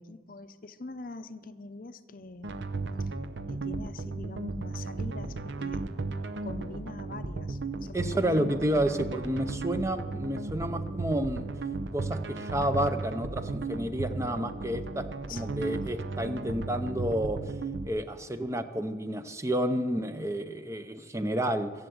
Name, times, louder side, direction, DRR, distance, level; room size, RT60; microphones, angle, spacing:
voice 1, 0.0-2.5 3.0-3.1 3.5-5.9 6.4-8.5 15.3-15.9, left 3 dB, 45° left, 11 dB, 0.7 m, -44 dB
sound 1, 2.4-17.9, right 3 dB, 70° right, 0.7 m, -35 dB
voice 2, 7.9-11.5 11.9-17.4 17.9-21.7, right 1 dB, 15° right, 9 dB, 0.6 m, -30 dB
22.0 x 7.8 x 7.9 m, 1.5 s
head